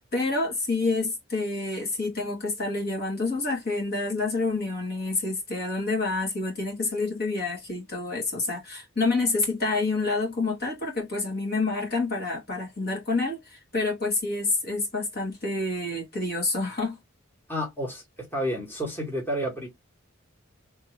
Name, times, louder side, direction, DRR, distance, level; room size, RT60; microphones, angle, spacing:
voice 1, 0.1-17.0, left 3 dB, 50° left, 1.8 m, -28 dB
voice 2, 17.5-19.7, equal, 10° left, 1.4 m, -30 dB
3.4 x 2.8 x 3.0 m
head